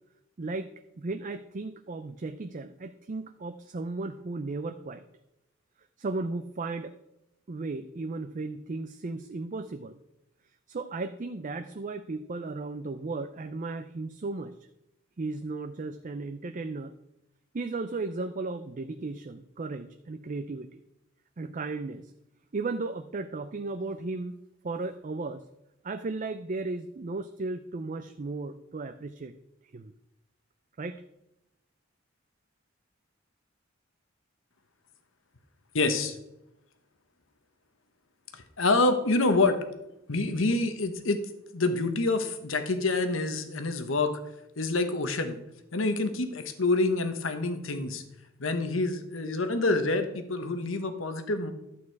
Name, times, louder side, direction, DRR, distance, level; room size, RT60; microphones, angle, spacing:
voice 1, 0.4-0.7 1.0-5.0 6.0-6.9 7.5-10.0 10.7-14.6 15.2-16.9 17.5-20.8 21.4-22.1 22.5-24.4 24.6-25.4 25.8-29.3 29.7-29.9 30.8-31.0, right 3 dB, 40° right, 8 dB, 0.5 m, -35 dB
voice 2, 35.7-36.2 38.3-39.6 40.1-41.2 41.5-44.1 44.6-45.4 45.7-48.0 48.4-51.5, left 2 dB, 85° left, 8 dB, 1.2 m, -27 dB
12.0 x 8.5 x 4.7 m, 0.87 s
head